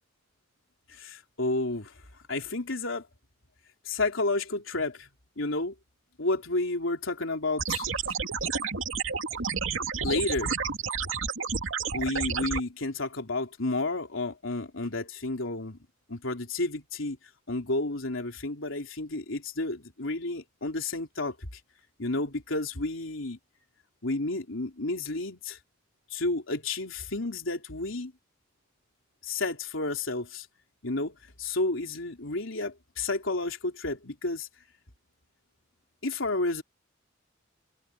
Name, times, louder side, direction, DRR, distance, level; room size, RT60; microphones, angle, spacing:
voice 1, 0.9-2.0 2.3-3.1 3.9-5.1 5.4-5.7 6.2-8.1 10.0-10.6 11.9-15.8 16.1-17.2 17.5-21.6 22.0-23.4 24.0-25.6 26.1-28.1 29.2-30.5 30.8-34.5 36.0-36.6, left 2 dB, 90° left, 3.5 m, -31 dB
sound 1, 7.6-12.6, right 5 dB, 90° right, 2.4 m, -30 dB
head